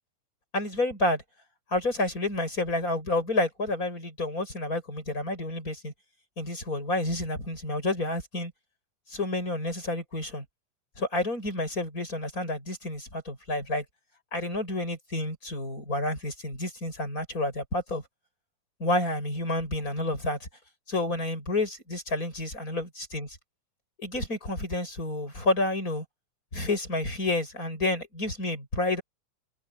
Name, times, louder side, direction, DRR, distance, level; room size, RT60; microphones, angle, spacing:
voice 1, 0.5-1.2 1.7-5.9 6.4-8.5 9.1-10.4 11.0-13.8 14.3-18.0 18.8-20.5 20.9-23.4 24.0-26.0 26.5-29.0, left 2 dB, 25° left, 8.1 m, -29 dB
omnidirectional pair, 3.8 m